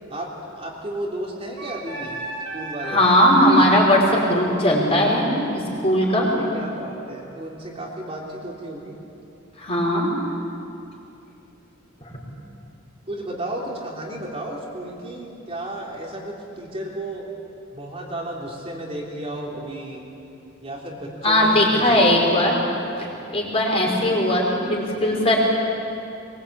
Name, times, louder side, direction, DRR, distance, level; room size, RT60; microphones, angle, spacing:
voice 1, 0.1-2.2 2.5-3.0 3.4-3.6 6.3-9.0 13.1-17.3 17.7-20.1 20.6-22.1, right 1 dB, 30° right, -3 dB, 3.4 m, -33 dB
Wind instrument woodwind instrument, 1.6-6.9, right 1 dB, 85° right, 6.5 m, -36 dB
voice 2, 2.9-6.3 9.6-10.1 12.0-12.1 21.2-22.5 23.0-25.4, left 1 dB, 30° left, -2 dB, 5.3 m, -19 dB
23.0 x 23.0 x 8.7 m, 2.8 s
head